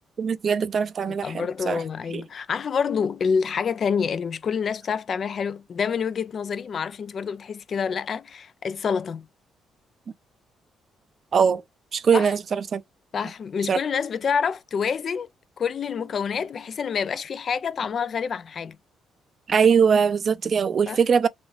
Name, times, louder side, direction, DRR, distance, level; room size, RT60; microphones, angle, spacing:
voice 1, 0.2-1.8 11.3-11.6 11.9-12.8 13.7-13.8 19.5-21.3, right 6 dB, 50° right, 0.4 m, -21 dB
voice 2, 1.1-9.3 12.1-12.3 13.1-15.3 15.6-18.8 20.9-21.0, left 6 dB, 55° left, 0.4 m, -27 dB
3.1 x 2.5 x 3.0 m
supercardioid pair, 70°, 0 cm